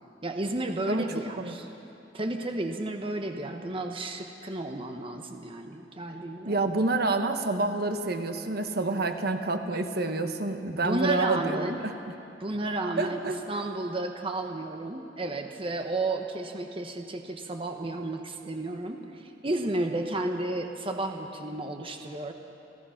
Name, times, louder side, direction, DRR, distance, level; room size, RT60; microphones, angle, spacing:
voice 1, 0.2-1.7 2.1-6.6 10.7-11.8 12.4-13.2 13.5-22.3, right 2 dB, 30° right, 4 dB, 1.1 m, -32 dB
voice 2, 6.4-12.1 13.0-13.3, right 2 dB, 60° right, 6 dB, 1.2 m, -28 dB
29.5 x 16.5 x 5.8 m, 2.8 s
head